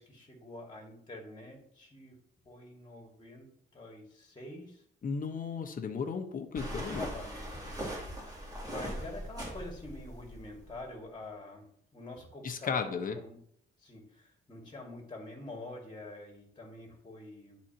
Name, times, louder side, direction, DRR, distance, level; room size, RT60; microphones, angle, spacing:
voice 1, 0.0-2.1 2.5-4.8 6.7-7.9 8.6-11.7 11.9-13.4 13.8-17.6, left 2 dB, 20° left, 1 dB, 2.2 m, -46 dB
voice 2, 5.0-7.1 12.4-13.2, left 5 dB, 45° left, 5 dB, 1.2 m, -34 dB
sound 1, 6.6-10.9, equal, 20° right, 3.0 m, -40 dB
11.0 x 4.2 x 2.9 m, 0.67 s
cardioid pair, 90°, 20 cm